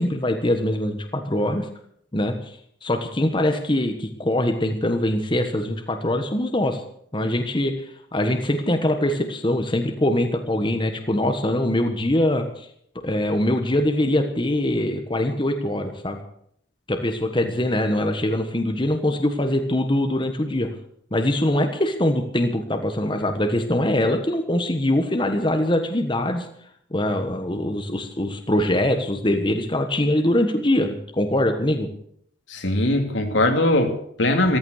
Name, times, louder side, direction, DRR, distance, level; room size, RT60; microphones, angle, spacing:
voice 1, 0.0-1.7 2.1-2.5 2.8-6.8 7.1-7.7 8.1-12.7 12.9-16.2 16.9-20.7 21.1-26.5 26.9-31.9, left 1 dB, 25° left, 5 dB, 1.4 m, -23 dB
voice 2, 32.5-34.6, left 1 dB, 75° left, 4 dB, 2.6 m, -21 dB
14.5 x 14.5 x 6.6 m, 0.66 s
head